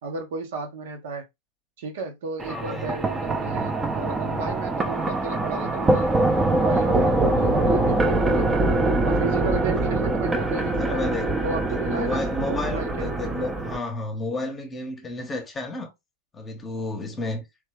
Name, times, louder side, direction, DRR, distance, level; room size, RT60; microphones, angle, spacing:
voice 1, 0.0-1.2 1.8-6.1 6.5-8.7 9.0-11.0 11.4-13.1, right 4 dB, 55° right, 0.9 m, -33 dB
sound 1, 2.4-13.8, right 2 dB, 15° right, 0.7 m, -23 dB
voice 2, 2.5-2.9 10.8-11.3 11.6-15.9 16.3-17.4, left 2 dB, 20° left, 1.0 m, -31 dB
3.5 x 3.2 x 3.3 m
figure-of-eight pair, 90°, 0 cm